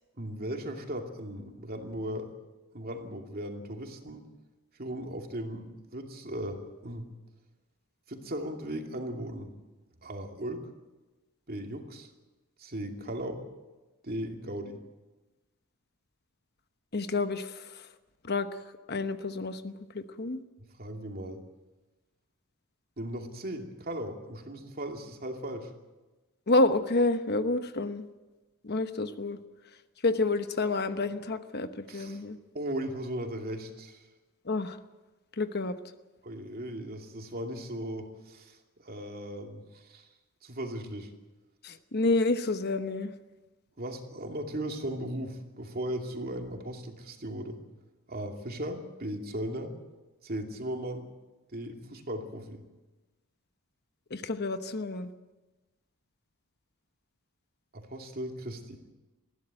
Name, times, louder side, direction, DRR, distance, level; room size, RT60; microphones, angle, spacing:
voice 1, 0.2-2.3 2.7-4.3 4.8-7.1 8.1-9.5 10.0-10.7 11.5-12.1 12.6-13.4 14.0-14.8 20.8-21.4 23.0-25.7 31.9-32.2 32.5-34.0 36.2-38.6 38.8-40.1 40.4-41.1 43.8-47.6 48.1-49.7 50.2-51.1 51.5-52.6 57.7-58.8, right 1 dB, 45° right, 3 dB, 2.5 m, -37 dB
voice 2, 16.9-17.9 18.2-18.6 18.9-20.4 26.5-28.1 28.6-29.4 30.0-32.4 34.4-34.8 35.3-35.8 41.6-43.1 54.1-55.1, left 2 dB, 50° left, 9 dB, 1.0 m, -29 dB
20.5 x 15.5 x 8.9 m, 1.1 s
head